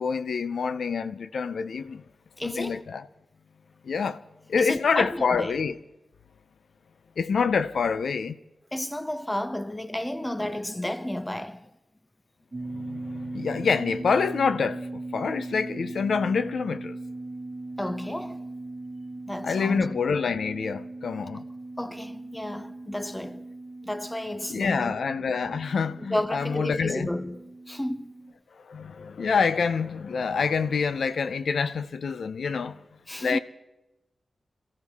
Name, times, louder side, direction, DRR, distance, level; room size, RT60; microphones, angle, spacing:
voice 1, 0.0-2.0 2.4-3.1 3.8-4.2 4.5-5.8 7.2-8.4 12.6-17.0 19.4-21.5 24.5-27.1 28.6-32.8 33.2-33.4, left 5 dB, 85° left, 0.6 m, -27 dB
voice 2, 2.4-2.8 4.6-5.5 8.7-11.7 17.8-18.5 19.3-20.0 21.8-23.4 23.8-24.9 26.1-28.2 33.1-33.4, left 1 dB, 10° left, 0.6 m, -32 dB
sound 1, 12.5-28.3, right 2 dB, 30° right, 1.8 m, -39 dB
26.5 x 15.0 x 3.6 m
wide cardioid pair, 145°, 0 cm